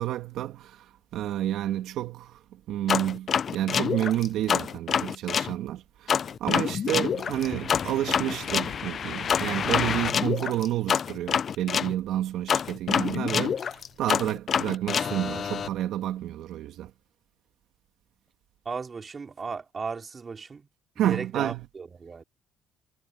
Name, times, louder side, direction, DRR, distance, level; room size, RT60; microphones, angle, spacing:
voice 1, 0.0-16.9 21.0-21.6, right 12 dB, 75° right, 2.0 m, -30 dB
sound 1, 2.9-5.5 6.1-11.9 12.5-15.7, left 7 dB, 45° left, 0.4 m, -27 dB
voice 2, 18.6-20.6 21.0-22.2, right 5 dB, 35° right, 2.7 m, -36 dB
cardioid pair, 90°, 0 cm